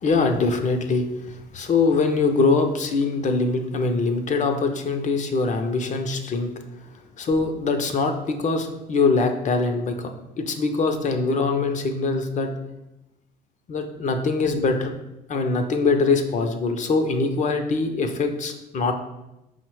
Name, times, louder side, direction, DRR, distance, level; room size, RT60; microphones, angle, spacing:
voice 1, 0.0-6.5 7.2-10.1 10.4-12.5 13.7-14.9 15.3-18.9, left 3 dB, 45° left, 5 dB, 0.6 m, -23 dB
5.3 x 2.1 x 4.6 m, 0.93 s
supercardioid pair, 80°, 18 cm